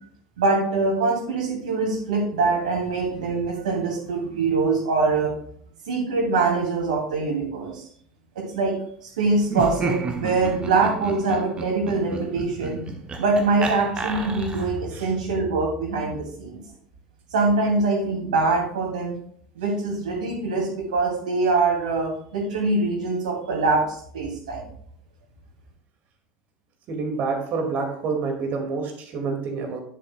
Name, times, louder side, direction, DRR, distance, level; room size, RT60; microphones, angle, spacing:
voice 1, 0.4-5.3 5.9-7.8 8.4-8.7 9.0-16.6 17.3-19.2 19.6-24.6, right 3 dB, 70° right, 0 dB, 2.5 m, -24 dB
Laughter, 9.4-14.9, right 4 dB, 25° right, 1.2 m, -31 dB
voice 2, 26.9-29.8, right 4 dB, 45° right, 3 dB, 2.1 m, -28 dB
10.5 x 6.9 x 2.2 m, 0.62 s
figure-of-eight pair, 75°, 4 cm